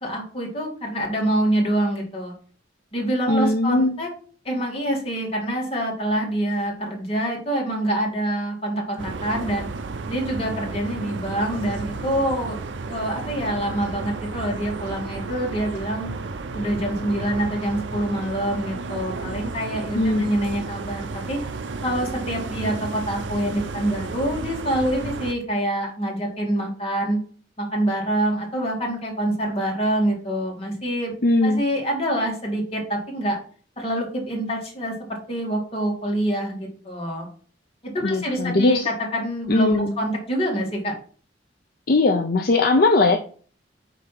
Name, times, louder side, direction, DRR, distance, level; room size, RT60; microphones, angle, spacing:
voice 1, 0.0-2.3 2.9-4.1 4.4-9.7 10.1-12.6 12.9-16.1 16.5-21.4 21.8-27.2 27.6-31.1 31.4-33.4 33.8-34.9 35.3-37.3 37.9-40.9, right 1 dB, 35° left, -1 dB, 2.2 m, -26 dB
voice 2, 3.3-4.0 19.9-20.3 31.2-31.6 38.0-38.9 39.5-39.9 41.9-43.2, left 2 dB, 55° left, 6 dB, 0.6 m, -19 dB
sound 1, 9.0-25.3, right 3 dB, 90° right, 0.6 m, -32 dB
5.3 x 4.1 x 5.8 m, 0.43 s
head